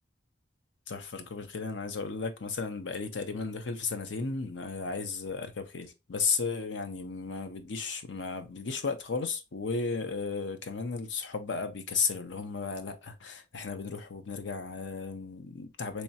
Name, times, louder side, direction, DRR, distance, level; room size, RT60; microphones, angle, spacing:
voice 1, 0.9-16.0, left 4 dB, 80° left, 0.6 m, -34 dB
3.4 x 3.1 x 2.8 m
head